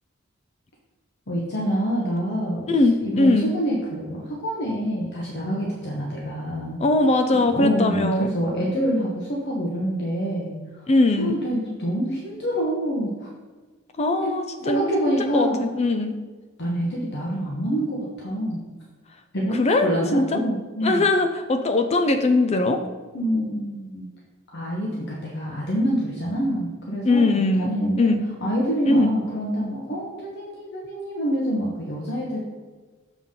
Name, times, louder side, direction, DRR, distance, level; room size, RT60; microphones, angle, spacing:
voice 1, 1.3-2.7 3.0-6.8 7.5-10.5 11.2-13.3 14.2-14.3 14.6-15.6 16.6-18.7 19.3-21.0 23.1-24.1 24.5-28.1 28.4-32.4, equal, 55° left, -3 dB, 1.1 m, -26 dB
voice 2, 2.7-3.5 6.8-8.3 10.9-11.4 14.0-16.2 19.5-20.4 20.8-22.8 27.0-27.7 28.0-28.2 28.9-29.2, left 2 dB, 30° left, 7 dB, 0.4 m, -21 dB
7.0 x 3.7 x 5.6 m, 1.4 s
head